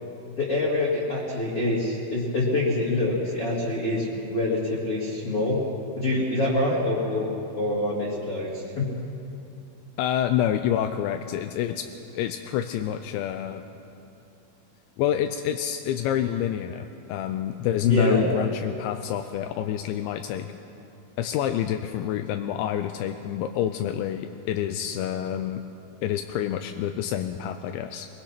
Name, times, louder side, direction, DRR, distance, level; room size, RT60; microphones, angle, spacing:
voice 1, 0.4-5.6 5.9-7.3 7.6-8.9 17.8-18.2, left 2 dB, 40° left, -6 dB, 2.6 m, -25 dB
voice 2, 10.0-11.9 12.1-13.6 15.0-20.5 21.2-25.6 26.0-28.1, left 10 dB, 85° left, 7 dB, 2.7 m, -27 dB
23.0 x 22.0 x 5.9 m, 2.8 s
omnidirectional pair, 5.7 m